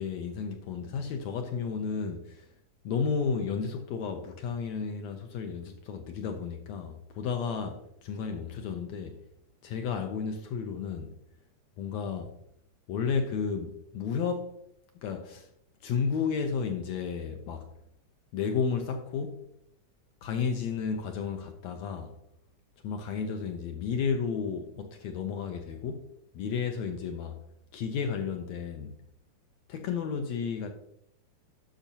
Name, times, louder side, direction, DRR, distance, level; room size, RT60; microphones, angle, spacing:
voice 1, 0.0-2.5 2.8-9.2 9.6-11.1 11.8-12.3 12.9-14.5 14.9-15.5 15.8-17.7 18.3-19.5 20.2-22.1 22.8-27.4 27.7-29.0 29.7-30.7, left 6 dB, 80° left, 1.6 m, -32 dB
10.5 x 6.2 x 2.8 m
omnidirectional pair, 3.7 m